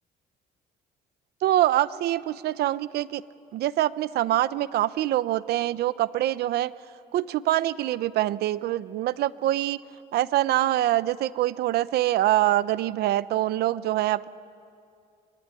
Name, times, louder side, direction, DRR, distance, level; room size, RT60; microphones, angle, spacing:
voice 1, 1.4-3.2 3.5-6.7 7.1-9.8 10.1-14.3, right 14 dB, 70° right, 16 dB, 0.8 m, -24 dB
24.0 x 24.0 x 9.9 m, 2.4 s
cardioid pair, 110°, 17 cm